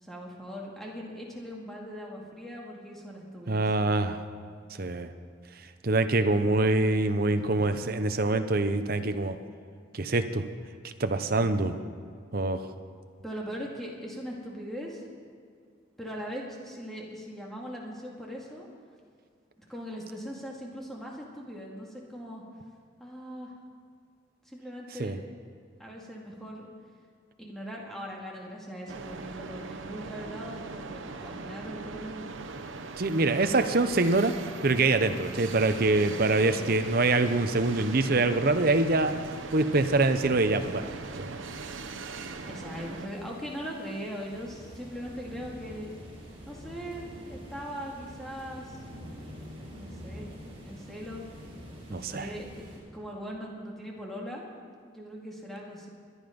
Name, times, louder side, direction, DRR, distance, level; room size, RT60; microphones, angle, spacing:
voice 1, 0.0-3.7 11.3-11.7 13.2-15.0 16.0-18.7 19.6-22.4 23.0-23.5 24.5-25.1 25.8-26.7 27.4-32.4 35.3-35.5 36.5-36.7 42.5-46.0 46.5-48.8 49.7-50.3 50.6-51.3 51.9-52.6 52.9-54.4 54.8-55.9, equal, ahead, -3 dB, 2.3 m, -40 dB
voice 2, 3.5-4.2 4.8-5.1 5.8-9.4 9.9-10.5 10.8-11.8 12.3-12.6 25.0-25.2 33.0-39.2 39.5-41.3 51.9-52.3, right 2 dB, 50° right, 8 dB, 0.8 m, -25 dB
sound 1, 28.9-43.1, right 3 dB, 90° right, 0.9 m, -40 dB
sound 2, 36.8-52.8, equal, 30° right, 4.4 m, -47 dB
22.5 x 9.8 x 5.3 m, 2.2 s
head